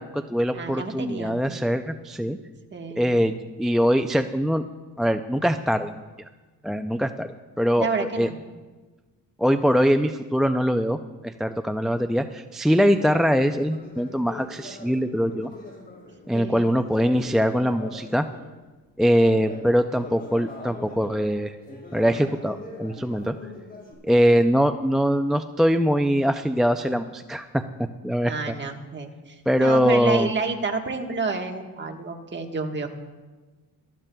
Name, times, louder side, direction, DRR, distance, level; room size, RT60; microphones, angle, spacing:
voice 1, 0.0-2.4 2.9-4.6 5.0-5.9 6.6-7.3 7.6-8.3 9.4-11.0 11.2-15.5 16.3-18.3 19.0-21.6 21.9-23.3 24.0-27.6 28.0-28.5 29.5-30.3, equal, ahead, 7 dB, 0.3 m, -22 dB
voice 2, 0.5-1.4 2.7-3.1 7.8-8.4 12.8-13.0 16.3-16.8 28.3-32.9, right 4 dB, 30° right, 3 dB, 1.3 m, -30 dB
Conversation, 12.8-18.6 19.0-23.9, left 2 dB, 25° left, 4.0 m, -42 dB
20.5 x 13.5 x 2.3 m, 1.3 s
cardioid pair, 115°, 36 cm